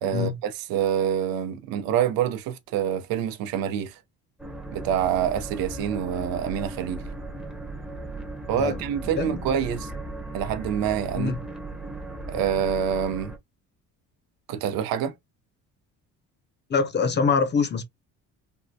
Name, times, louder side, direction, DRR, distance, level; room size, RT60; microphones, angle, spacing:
voice 1, 0.0-4.0 4.7-7.0 8.5-9.9 10.3-11.4 12.3-13.3 14.5-15.1, right 9 dB, 80° right, 0.7 m, -26 dB
sound 1, 4.4-13.4, right 2 dB, ahead, 0.8 m, -37 dB
voice 2, 16.7-17.8, left 5 dB, 30° left, 0.6 m, -24 dB
3.5 x 2.2 x 2.6 m
cardioid pair, 95°, 34 cm